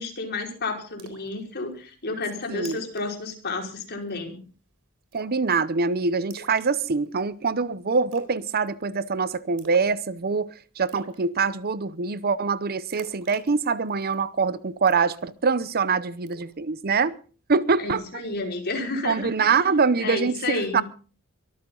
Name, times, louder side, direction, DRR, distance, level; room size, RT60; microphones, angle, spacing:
voice 1, 0.0-4.4 17.8-19.6 20.0-20.8, left 3 dB, 50° left, 5.1 m, -31 dB
Splash splatter, 1.0-1.3 1.7-1.8 2.2-2.3 2.6-3.1 3.3-3.5 3.8-4.2 5.1-5.5 6.3-7.2 8.1-8.4 8.7-9.1 9.6-10.0 10.3-10.4 10.9-11.2 12.9-14.2 14.9-15.8 16.3-16.5, right 4 dB, 85° right, 3.9 m, -46 dB
voice 2, 5.1-17.2 17.5-18.0 19.0-20.8, right 4 dB, 45° right, 0.8 m, -24 dB
23.0 x 14.0 x 3.9 m
head